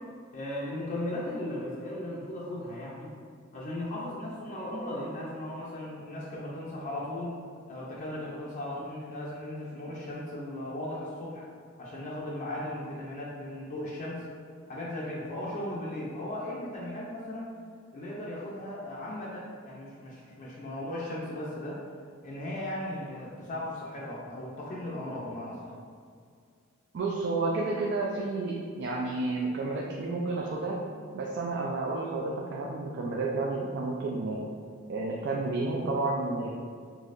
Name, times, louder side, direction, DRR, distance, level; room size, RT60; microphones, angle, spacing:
voice 1, 0.3-3.1 3.5-7.4 7.7-11.4 11.8-14.2 14.7-17.5 17.9-21.8 22.2-25.7, left 1 dB, 40° left, -6 dB, 0.4 m, -37 dB
voice 2, 26.9-30.8 31.1-34.4 34.9-36.5, right 3 dB, 55° right, -2 dB, 0.3 m, -31 dB
4.0 x 2.7 x 2.5 m, 2.1 s
head